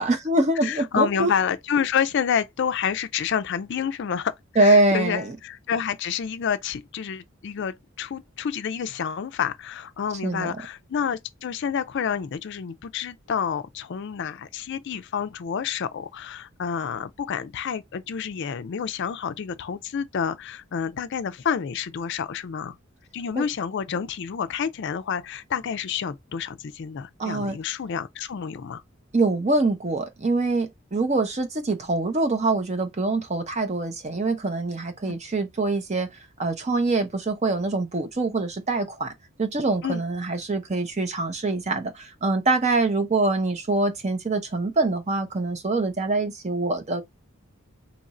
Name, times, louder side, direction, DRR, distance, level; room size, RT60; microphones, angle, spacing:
voice 1, 0.0-1.3 4.6-5.4 10.2-10.5 23.4-23.5 27.2-27.6 29.1-36.1 36.4-39.1 39.4-47.0, right 2 dB, 30° right, 0.7 m, -24 dB
voice 2, 0.6-22.8 23.1-28.8 35.1-35.2 39.8-40.0, left 7 dB, 55° left, 0.4 m, -29 dB
2.9 x 2.5 x 4.1 m
head